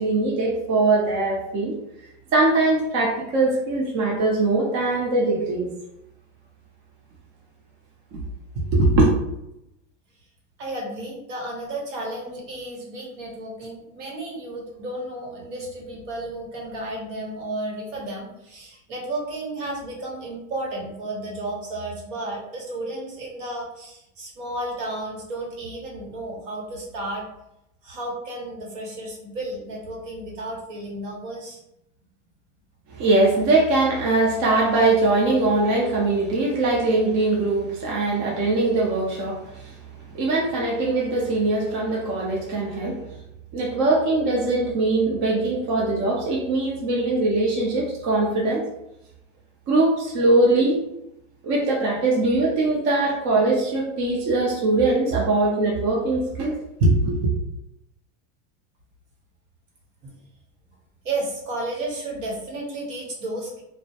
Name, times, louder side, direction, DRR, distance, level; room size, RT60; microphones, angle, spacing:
voice 1, 0.0-1.7 2.3-5.7 8.1-8.2 8.5-9.1 32.9-43.0 43.5-48.6 49.7-50.8 51.4-57.3, right 2 dB, 45° right, -2 dB, 0.6 m, -21 dB
voice 2, 10.6-27.3 27.8-31.6 60.0-60.1 61.0-63.6, right 2 dB, 70° right, -2 dB, 1.1 m, -33 dB
2.1 x 2.1 x 2.7 m, 0.84 s
supercardioid pair, 115°, 39 cm